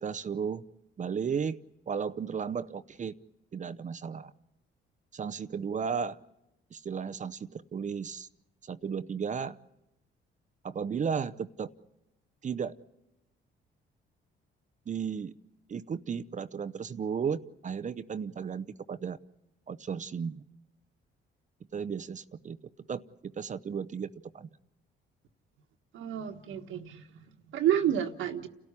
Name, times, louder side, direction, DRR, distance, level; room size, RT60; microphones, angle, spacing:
voice 1, 0.0-0.6 1.0-1.6 1.9-3.1 3.5-4.3 5.1-6.2 6.7-8.3 8.6-9.6 10.6-11.7 12.4-12.8 14.9-15.3 15.7-19.2 19.7-20.4 21.7-22.6 22.9-24.1 24.3-24.5, right 6 dB, 40° right, 0.7 m, -34 dB
voice 2, 25.9-28.5, right 10 dB, 80° right, 1.5 m, -30 dB
30.0 x 13.5 x 9.8 m
cardioid pair, 90°, 20 cm